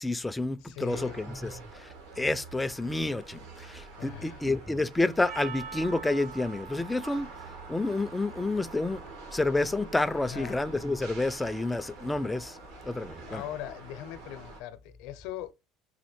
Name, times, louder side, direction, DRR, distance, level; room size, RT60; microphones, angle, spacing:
voice 1, 0.0-1.9 2.2-7.3 7.7-9.0 9.3-12.6 12.8-13.4, left 2 dB, 10° left, 0.4 m, -29 dB
voice 2, 0.6-1.2 4.0-4.4 10.1-10.6 13.3-15.5, left 13 dB, 75° left, 0.6 m, -40 dB
sound 1, 0.9-14.6, right 3 dB, 80° right, 1.8 m, -46 dB
Percussion, 5.3-9.6, right 7 dB, 60° right, 2.2 m, -45 dB
4.3 x 2.5 x 4.4 m
cardioid pair, 120°, 0 cm